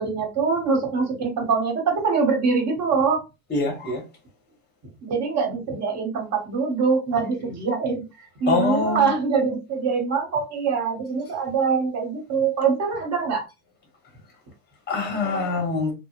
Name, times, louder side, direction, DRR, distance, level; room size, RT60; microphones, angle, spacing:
voice 1, 0.0-3.2 5.0-8.0 8.4-13.4, right 5 dB, 35° right, 1.2 m, -23 dB
voice 2, 3.5-4.0 7.1-7.2 8.5-9.1 14.9-15.9, left 3 dB, 20° left, 1.2 m, -24 dB
2.8 x 2.1 x 2.4 m
hypercardioid pair, 95°, 44 cm